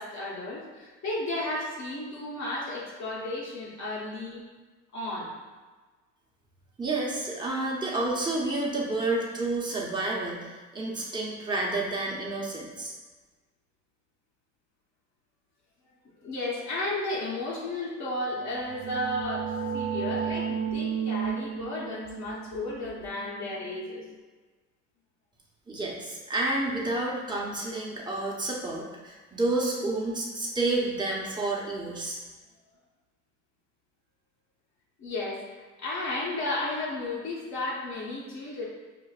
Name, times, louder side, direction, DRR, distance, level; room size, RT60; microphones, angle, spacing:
voice 1, 0.0-4.4 4.9-5.3 16.2-24.0 35.0-35.4 35.8-38.6, left 2 dB, 65° left, -5 dB, 1.0 m, -33 dB
voice 2, 6.8-12.9 25.7-32.2, right 2 dB, 15° right, -4 dB, 0.9 m, -30 dB
sound 1, 18.3-23.9, right 7 dB, 80° right, 0.6 m, -33 dB
5.8 x 2.5 x 2.4 m, 1.3 s
cardioid pair, 90°, 30 cm